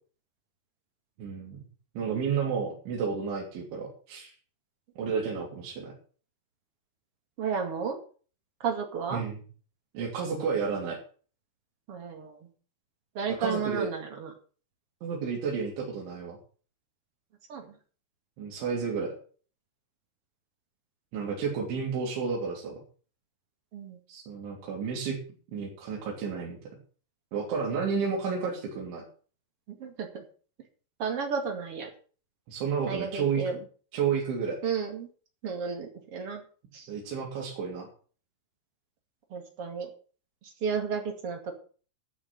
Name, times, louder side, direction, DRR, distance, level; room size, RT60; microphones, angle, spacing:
voice 1, 1.2-1.6 2.0-4.3 5.0-5.9 9.1-9.4 10.0-11.0 13.4-13.9 15.0-16.4 18.4-19.1 21.1-22.8 24.1-25.2 25.5-26.6 27.3-29.0 32.5-33.4 33.9-34.6 36.9-37.9, right 6 dB, 75° right, -4 dB, 5.5 m, -31 dB
voice 2, 7.4-8.0 8.6-9.2 11.9-12.5 13.1-14.3 17.5-17.8 23.7-24.0 29.7-30.2 31.0-31.9 32.9-33.6 34.6-35.1 35.4-36.4 36.7-36.9 39.3-39.9 40.4-41.5, right 6 dB, 40° right, 4 dB, 2.3 m, -33 dB
13.0 x 6.4 x 7.8 m, 0.41 s
omnidirectional pair, 5.4 m